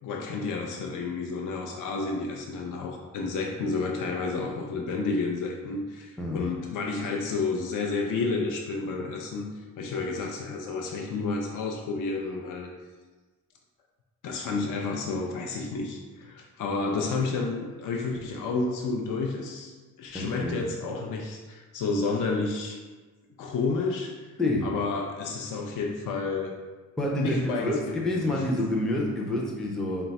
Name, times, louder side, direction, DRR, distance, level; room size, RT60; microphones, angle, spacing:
voice 1, 0.0-12.7 14.2-22.8 23.4-24.2 24.6-26.6 27.2-28.4, left 3 dB, 65° left, 0 dB, 0.5 m, -31 dB
voice 2, 20.1-20.6 24.4-24.7 27.0-30.0, left 1 dB, ahead, -2 dB, 0.4 m, -28 dB
3.9 x 2.2 x 4.0 m, 1.3 s
cardioid pair, 150°, 34 cm